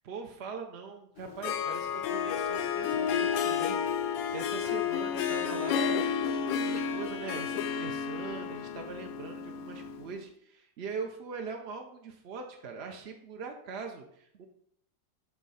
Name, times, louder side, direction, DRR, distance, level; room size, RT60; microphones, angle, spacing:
voice 1, 0.0-6.0 6.3-14.5, right 5 dB, 65° right, 3 dB, 0.6 m, -42 dB
Harp, 1.2-10.1, left 7 dB, 85° left, 1.3 m, -31 dB
7.5 x 3.7 x 5.5 m, 0.69 s
omnidirectional pair, 2.0 m